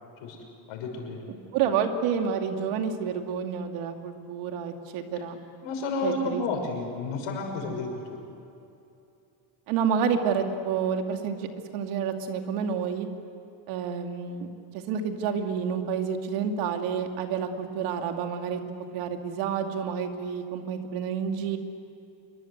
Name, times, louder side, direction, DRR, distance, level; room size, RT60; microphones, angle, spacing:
voice 1, 0.7-1.3 5.6-8.2, left 3 dB, 80° left, 3 dB, 6.0 m, -31 dB
voice 2, 1.3-5.4 6.0-6.4 9.7-13.1 13.7-14.5 14.9-18.6 18.9-21.6, right 7 dB, 85° right, 5 dB, 2.6 m, -29 dB
27.5 x 23.0 x 8.2 m, 2.7 s
cardioid pair, 130°, 49 cm